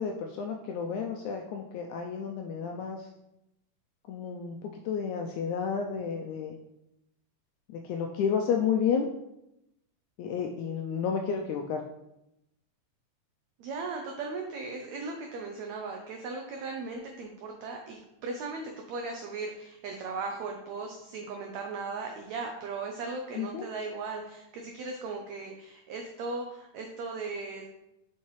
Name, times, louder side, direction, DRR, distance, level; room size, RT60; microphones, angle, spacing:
voice 1, 0.0-3.1 4.1-6.5 7.7-9.1 10.2-11.8 23.3-23.7, left 6 dB, 85° left, 2 dB, 1.7 m, -31 dB
voice 2, 13.6-27.7, right 3 dB, 85° right, 2 dB, 1.6 m, -37 dB
7.2 x 5.7 x 3.1 m, 0.87 s
omnidirectional pair, 3.9 m